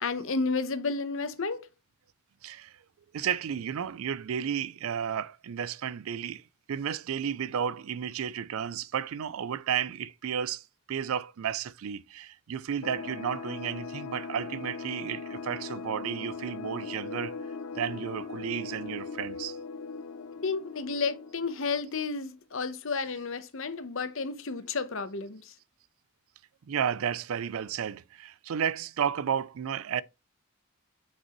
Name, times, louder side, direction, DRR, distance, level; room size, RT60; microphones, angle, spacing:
voice 1, 0.0-1.7 20.4-25.5, left 4 dB, 60° left, 0.9 m, -32 dB
voice 2, 2.4-2.7 3.1-6.4 6.7-17.3 17.8-19.6 26.7-30.0, right 8 dB, 70° right, 0.4 m, -32 dB
sound 1, 12.8-22.2, left 4 dB, 85° left, 0.5 m, -40 dB
6.1 x 5.3 x 3.0 m
head